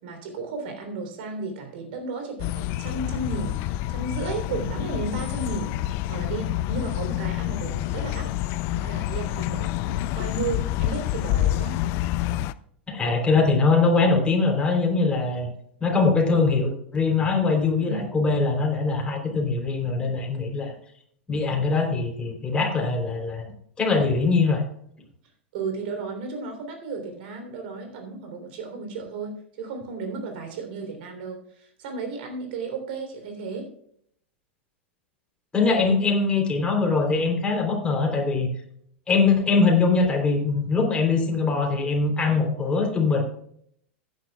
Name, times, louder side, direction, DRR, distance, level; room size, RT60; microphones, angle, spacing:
voice 1, 0.0-8.3 8.7-11.8 17.8-18.0 25.5-33.7, right 4 dB, 55° right, 5 dB, 3.5 m, -34 dB
sound 1, 2.4-12.5, left 14 dB, 40° left, 0.4 m, -28 dB
voice 2, 12.9-15.5 15.8-20.7 21.3-23.4 23.8-24.6 35.5-38.5 39.1-43.2, left 4 dB, 15° left, 1 dB, 3.5 m, -22 dB
15.5 x 10.0 x 2.4 m, 0.67 s
figure-of-eight pair, 90°, 7 cm